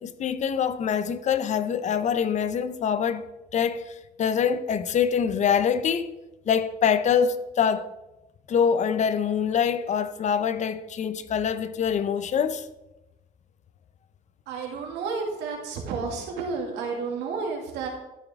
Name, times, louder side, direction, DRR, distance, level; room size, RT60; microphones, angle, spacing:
voice 1, 0.0-3.2 3.5-6.1 6.5-7.9 8.5-12.7, left 7 dB, 45° left, 0.7 m, -25 dB
voice 2, 14.5-17.9, right 4 dB, 85° right, 2.3 m, -31 dB
13.0 x 6.8 x 3.6 m
cardioid pair, 110°, 17 cm